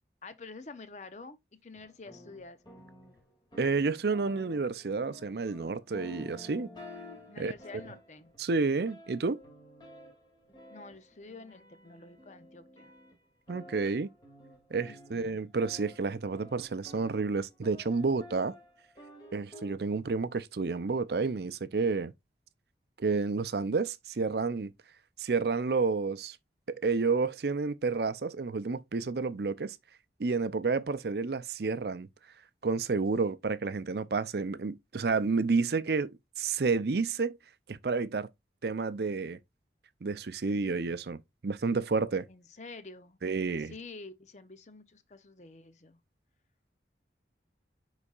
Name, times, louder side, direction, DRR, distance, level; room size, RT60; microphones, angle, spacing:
voice 1, 0.2-2.6 7.3-8.3 10.7-12.9 14.8-15.4 42.3-43.2 43.6-46.0, left 3 dB, 40° left, 0.7 m, -48 dB
sound 1, 1.7-19.7, left 1 dB, 25° left, 2.4 m, -52 dB
voice 2, 3.6-6.7 7.4-7.5 8.4-9.4 13.5-14.1 14.7-18.5 19.3-22.1 23.0-24.7 25.2-26.4 26.7-29.8 30.2-32.1 32.6-37.4 37.7-38.3 38.6-39.4 40.0-42.3 43.2-43.7, right 4 dB, 65° right, 0.5 m, -30 dB
9.8 x 4.0 x 2.4 m
head